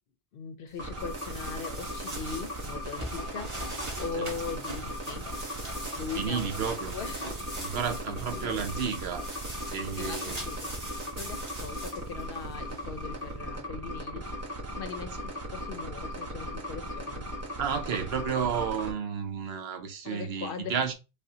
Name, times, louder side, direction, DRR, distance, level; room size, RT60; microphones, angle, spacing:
voice 1, 0.3-5.3 5.9-6.6 6.9-7.3 7.8-8.7 10.0-10.8 11.2-14.3 14.7-17.2 20.0-20.8, left 5 dB, 60° left, 0.7 m, -40 dB
sound 1, 0.8-18.9, equal, 15° right, 0.8 m, -37 dB
sound 2, 0.8-13.3, right 1 dB, 35° right, 1.6 m, -41 dB
voice 2, 6.1-7.0 7.6-9.3 9.7-10.4 17.6-20.9, right 7 dB, 65° right, 0.9 m, -32 dB
5.1 x 2.1 x 2.8 m
omnidirectional pair, 1.1 m